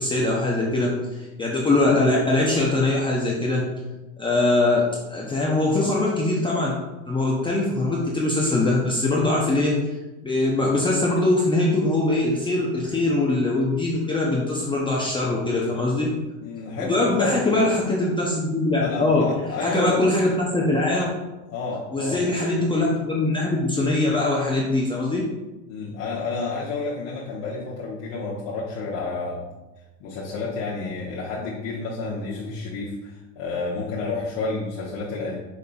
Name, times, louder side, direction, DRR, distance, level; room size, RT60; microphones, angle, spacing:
voice 1, 0.0-3.6 4.2-4.8 5.1-6.7 7.1-9.8 10.2-16.1 16.8-19.3 19.6-21.1 21.9-25.2, left 2 dB, 15° left, -4 dB, 0.6 m, -22 dB
voice 2, 16.4-17.5 18.8-20.0 21.5-22.3 25.7-29.4 30.0-35.4, left 3 dB, 65° left, -6 dB, 1.1 m, -30 dB
5.6 x 3.7 x 2.3 m, 1.1 s
supercardioid pair, 110°, 39 cm